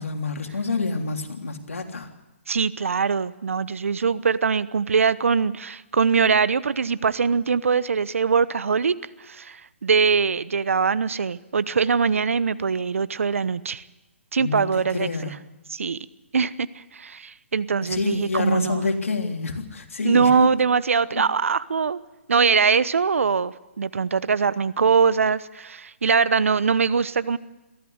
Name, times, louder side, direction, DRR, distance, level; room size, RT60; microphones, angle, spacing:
voice 1, 0.0-2.1 14.4-15.4 17.8-20.5 21.1-21.2, left 3 dB, 85° left, 3 dB, 3.3 m, -28 dB
voice 2, 2.5-13.8 14.3-15.4 15.7-16.0 16.3-18.8 20.0-22.0 22.3-27.4, right 5 dB, 75° right, 17 dB, 1.0 m, -22 dB
22.5 x 15.0 x 8.1 m, 1.1 s
hypercardioid pair, 145°, 7 cm